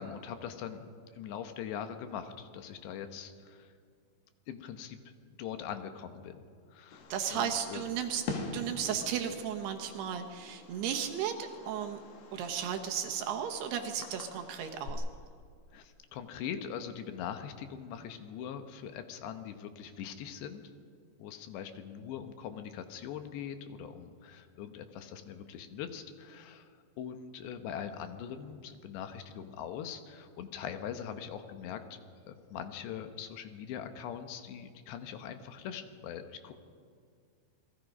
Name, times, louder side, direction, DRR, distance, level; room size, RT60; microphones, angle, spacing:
voice 1, 0.0-3.7 4.5-5.0 5.3-6.4 6.7-7.8 15.7-20.7 21.2-26.7 27.0-32.0 32.3-36.6, left 8 dB, 75° left, 8 dB, 3.1 m, -42 dB
Fireworks, 6.9-14.9, left 3 dB, 55° left, 3.8 m, -45 dB
voice 2, 7.1-8.2 8.5-12.0 12.3-15.0, right 8 dB, 70° right, 5 dB, 2.9 m, -34 dB
27.5 x 21.0 x 5.3 m, 2.1 s
omnidirectional pair, 5.3 m